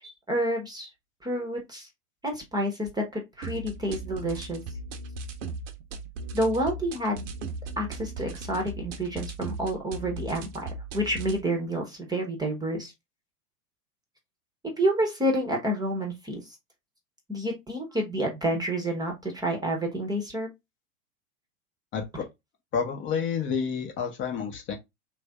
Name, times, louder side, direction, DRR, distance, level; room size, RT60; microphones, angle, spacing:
voice 1, 0.0-0.9 1.2-1.9 2.2-4.6 6.3-7.3 7.8-10.7 10.9-12.9 14.8-16.4 17.3-20.5, right 1 dB, 10° right, 0.9 m, -29 dB
sound 1, 3.4-11.4, right 3 dB, 55° right, 0.8 m, -38 dB
voice 2, 21.9-22.3 22.7-24.8, left 6 dB, 25° left, 0.8 m, -29 dB
3.4 x 2.6 x 3.3 m
hypercardioid pair, 100°, 44 cm